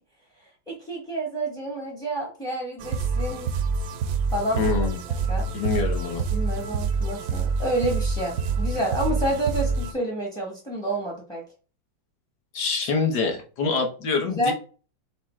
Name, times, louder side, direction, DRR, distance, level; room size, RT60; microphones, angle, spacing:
voice 1, 0.7-3.5 4.3-5.5 6.3-11.4 14.3-14.5, right 1 dB, 5° left, -1 dB, 0.5 m, -29 dB
sound 1, 2.8-9.9, right 4 dB, 70° right, 0.9 m, -27 dB
voice 2, 4.5-5.0 5.5-6.2 12.5-14.5, left 4 dB, 65° left, 3 dB, 1.4 m, -25 dB
4.9 x 2.2 x 4.3 m, 0.36 s
omnidirectional pair, 2.1 m